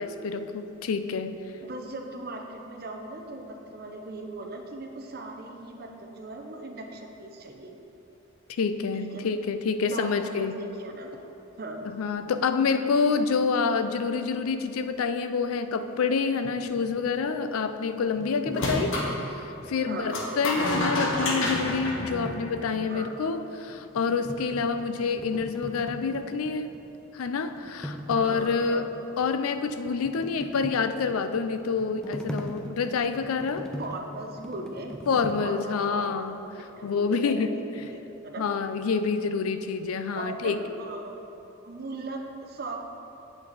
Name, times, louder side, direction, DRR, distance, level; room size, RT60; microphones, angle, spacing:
voice 1, 0.0-1.4 8.6-10.6 12.0-19.0 19.7-26.7 27.1-33.7 35.1-36.4 36.8-37.5 38.4-40.6, left 5 dB, 85° left, 9 dB, 0.4 m, -27 dB
voice 2, 1.6-7.8 8.9-9.3 9.8-11.2 11.6-11.9 19.8-20.3 22.8-23.4 28.1-28.9 29.2-29.4 33.8-34.9 35.4-36.3 36.8-38.5 40.1-41.2 41.6-42.8, right 2 dB, 45° right, 3 dB, 0.6 m, -39 dB
sound 1, 16.4-19.9 20.5-23.3 23.7-26.9 27.2-35.4, equal, 5° left, 0.3 m, -41 dB
sound 2, 18.5-19.1 20.1-22.8, left 1 dB, 65° left, 0.9 m, -29 dB
8.2 x 5.4 x 4.0 m, 3.0 s
head